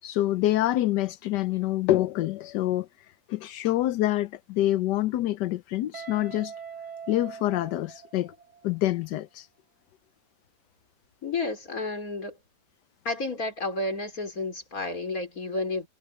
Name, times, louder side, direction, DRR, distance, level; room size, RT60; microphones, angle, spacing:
voice 1, 0.0-6.5 7.1-8.3 8.6-9.5, left 14 dB, 80° left, 1.3 m, -26 dB
Guitar, 5.9-8.8, right 7 dB, 65° right, 5.1 m, -42 dB
voice 2, 11.2-12.4 13.0-15.9, left 2 dB, 55° left, 4.6 m, -31 dB
omnidirectional pair, 1.8 m